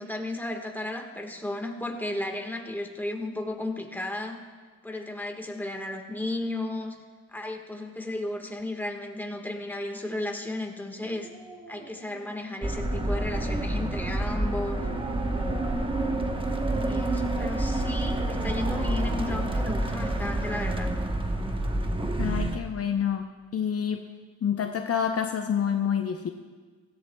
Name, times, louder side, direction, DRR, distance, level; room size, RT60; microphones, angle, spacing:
voice 1, 0.0-4.4 4.8-7.0 7.3-11.3 11.7-14.8 16.8-20.9, left 1 dB, 5° left, 3 dB, 1.5 m, -34 dB
Dog, 11.0-13.0 14.7-16.4 18.1-20.3 20.6-20.7, right 2 dB, 80° right, 4.1 m, -43 dB
sound 1, 12.6-22.6, right 1 dB, 15° right, 1.0 m, -28 dB
voice 2, 22.2-23.2 23.5-24.1 24.4-26.3, left 8 dB, 50° left, 5 dB, 0.7 m, -27 dB
17.0 x 14.0 x 2.3 m, 1.5 s
cardioid pair, 80°, 31 cm